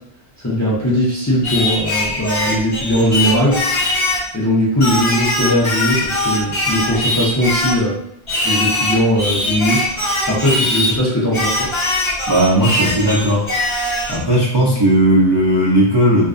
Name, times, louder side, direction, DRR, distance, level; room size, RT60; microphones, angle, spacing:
voice 1, 0.4-3.6 4.3-7.9 8.4-9.8 10.3-11.7, equal, 20° left, -8 dB, 0.5 m, -18 dB
Singing, 1.4-4.3 4.8-7.8 8.3-11.0 11.3-14.2, left 1 dB, 40° left, 1.0 m, -21 dB
voice 2, 12.3-13.5 14.1-16.3, right 1 dB, 40° right, -6 dB, 0.3 m, -15 dB
2.5 x 2.2 x 2.4 m, 0.76 s
omnidirectional pair, 1.1 m